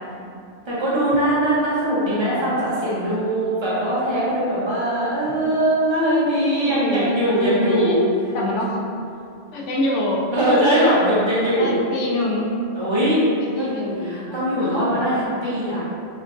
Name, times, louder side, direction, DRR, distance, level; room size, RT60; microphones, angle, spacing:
voice 1, 0.7-8.0 10.3-11.7 12.8-13.2 13.5-13.7 14.0-15.8, right 1 dB, 25° right, -9 dB, 0.8 m, -21 dB
voice 2, 2.1-2.6 5.4-5.5 6.6-8.0 8.3-8.8 9.5-10.2 10.7-11.2 11.6-12.5 13.4-14.3 14.5-15.1, left 1 dB, 80° left, -2 dB, 0.9 m, -26 dB
4.4 x 2.3 x 2.5 m, 2.5 s
omnidirectional pair, 1.2 m